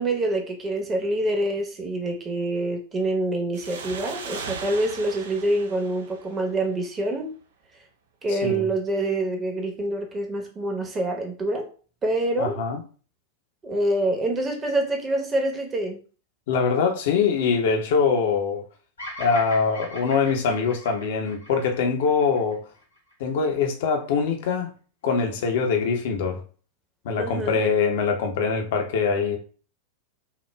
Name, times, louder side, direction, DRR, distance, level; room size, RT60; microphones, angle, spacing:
voice 1, 0.0-7.3 8.2-11.7 12.0-12.5 13.6-16.0 27.2-27.6, right 1 dB, 20° right, 1.0 m, -26 dB
sound 1, 3.5-6.9, right 5 dB, 60° right, 0.5 m, -38 dB
voice 2, 8.3-8.7 12.4-12.8 16.5-18.6 19.2-22.6 23.2-24.7 25.0-26.4 27.0-29.4, left 5 dB, 55° left, 0.8 m, -23 dB
Bird vocalization bird call bird song, 19.0-23.3, equal, 75° left, 1.6 m, -40 dB
5.8 x 2.3 x 2.2 m
figure-of-eight pair, 90°, 0 cm